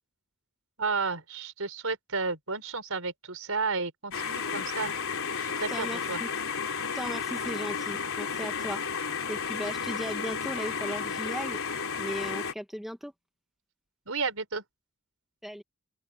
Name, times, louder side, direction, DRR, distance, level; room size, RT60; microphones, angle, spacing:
voice 1, 0.8-4.9 5.4-6.2 14.1-14.6, right 4 dB, 70° right, 5.2 m, -32 dB
sound 1, 4.1-12.5, left 6 dB, 65° left, 4.0 m, -33 dB
voice 2, 5.7-6.3 6.9-9.0 9.3-11.6 12.0-13.1 15.4-15.6, equal, ahead, 1.1 m, -37 dB
open air
head